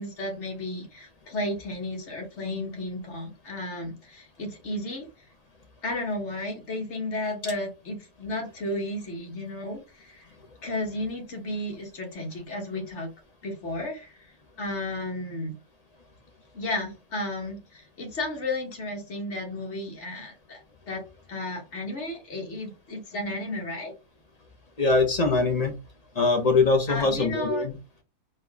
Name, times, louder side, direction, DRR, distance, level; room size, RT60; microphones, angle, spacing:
voice 1, 0.0-5.1 5.8-10.2 10.6-13.1 13.4-14.3 14.6-15.5 16.5-20.6 20.9-23.9 26.9-27.7, left 1 dB, 50° left, 0 dB, 1.7 m, -33 dB
voice 2, 24.8-25.8 26.2-27.7, left 3 dB, 35° left, 4 dB, 0.7 m, -22 dB
4.2 x 2.9 x 3.4 m, 0.27 s
omnidirectional pair, 1.6 m